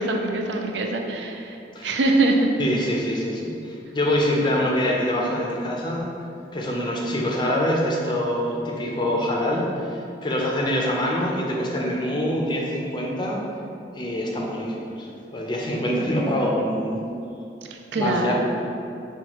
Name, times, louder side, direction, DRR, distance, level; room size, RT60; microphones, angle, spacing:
voice 1, 0.0-2.5 17.7-18.3, right 2 dB, 80° right, 3 dB, 0.4 m, -23 dB
voice 2, 2.6-6.1 6.5-13.4 13.9-17.0 18.0-18.3, left 1 dB, 25° left, -2 dB, 0.5 m, -25 dB
5.7 x 2.3 x 2.9 m, 2.7 s
head